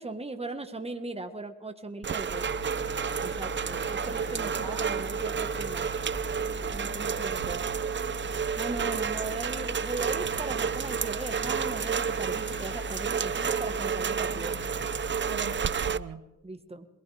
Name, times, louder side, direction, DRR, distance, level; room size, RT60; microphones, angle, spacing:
voice 1, 0.0-2.4 3.2-5.9 6.7-7.6 8.6-14.6 16.4-16.9, right 2 dB, 15° right, 6 dB, 1.4 m, -38 dB
Rain, 2.0-16.0, right 7 dB, 35° right, 0.4 m, -31 dB
sound 1, 2.3-16.0, left 5 dB, 50° left, 0.6 m, -41 dB
voice 2, 3.7-4.8 15.3-16.3, right 7 dB, 65° right, 8 dB, 1.1 m, -43 dB
22.0 x 19.0 x 3.4 m, 1.0 s
cardioid pair, 80°, 36 cm